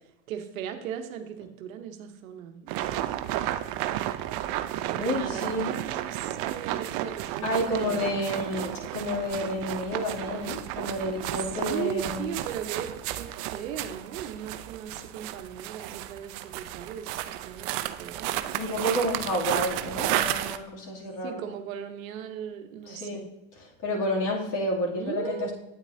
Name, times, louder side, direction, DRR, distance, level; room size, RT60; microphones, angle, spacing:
voice 1, 0.3-2.7 4.9-8.2 11.3-18.5 21.2-23.3 24.9-25.5, right 8 dB, 90° right, 7 dB, 1.0 m, -37 dB
sound 1, 2.7-20.6, right 13 dB, 60° right, 0.6 m, -33 dB
voice 2, 5.0-5.7 7.4-12.3 18.5-21.4 22.9-23.2 23.5-25.5, equal, 50° left, -3 dB, 2.8 m, -30 dB
9.0 x 8.7 x 2.8 m, 0.87 s
supercardioid pair, 100°, 39 cm